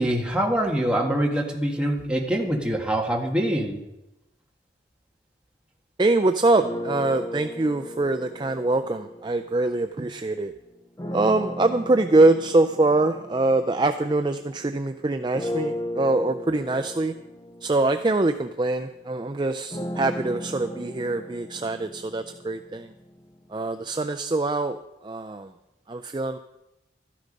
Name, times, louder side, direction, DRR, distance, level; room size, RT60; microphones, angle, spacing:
voice 1, 0.0-3.8, right 1 dB, 5° right, -1 dB, 1.7 m, -24 dB
voice 2, 6.0-10.5 11.1-17.1 17.6-22.9 23.5-25.5 25.9-26.4, right 2 dB, 25° right, 8 dB, 0.4 m, -24 dB
sound 1, 6.6-10.2 11.0-14.8 15.3-23.3, equal, 20° left, 0.6 m, -36 dB
13.5 x 11.5 x 5.3 m, 0.92 s
head